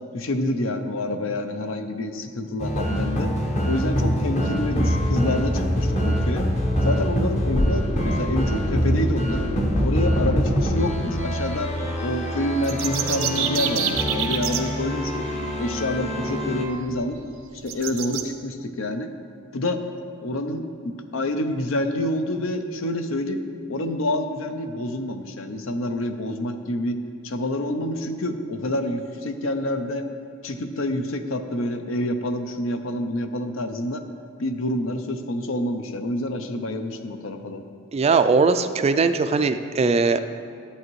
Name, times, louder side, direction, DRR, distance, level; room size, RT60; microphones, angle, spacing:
voice 1, 0.1-3.3 3.6-6.5 6.8-9.5 9.8-11.7 12.0-15.2 15.6-17.2 17.6-19.1 19.5-19.8 20.2-20.6 21.1-23.4 23.7-27.0 27.2-30.1 30.4-34.0 34.4-37.6, left 1 dB, 80° left, 7 dB, 0.6 m, -27 dB
sound 1, 2.6-16.7, equal, 35° left, 0.8 m, -24 dB
sound 2, 12.5-14.6 16.4-16.5 16.9-17.0 17.7-18.2, right 9 dB, 80° right, 0.7 m, -26 dB
voice 2, 37.9-40.2, right 4 dB, 30° right, 10 dB, 0.3 m, -20 dB
11.5 x 8.4 x 3.1 m, 2.3 s
head